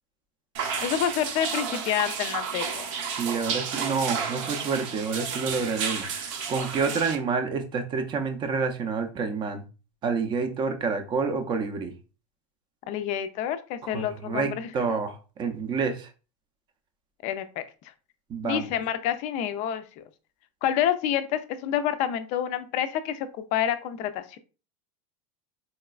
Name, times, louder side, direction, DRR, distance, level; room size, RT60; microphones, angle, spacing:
sound 1, 0.5-7.1, right 6 dB, 65° right, 0.7 m, -32 dB
voice 1, 0.8-2.9 12.9-14.7 17.2-17.6 18.4-20.0 20.6-24.4, left 10 dB, 40° left, 11 dB, 0.4 m, -28 dB
voice 2, 3.1-9.6 10.0-11.9 13.8-16.1 18.3-18.7, right 5 dB, 25° right, 6 dB, 0.5 m, -28 dB
4.0 x 2.2 x 2.3 m, 0.34 s
supercardioid pair, 135°, 17 cm